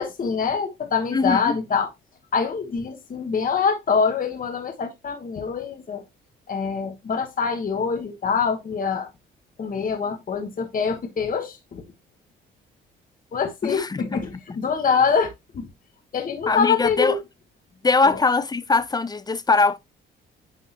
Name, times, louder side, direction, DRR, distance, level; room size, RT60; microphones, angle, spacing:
voice 1, 0.0-1.9 2.3-6.0 6.5-9.1 9.6-11.8 13.3-15.7 16.1-17.2 18.1-18.2, left 5 dB, 45° left, 1.3 m, -25 dB
voice 2, 1.1-1.5 13.6-14.2 16.5-17.2 17.8-19.8, left 4 dB, 20° left, 0.6 m, -21 dB
9.2 x 3.6 x 2.9 m
cardioid pair, 90°, 20 cm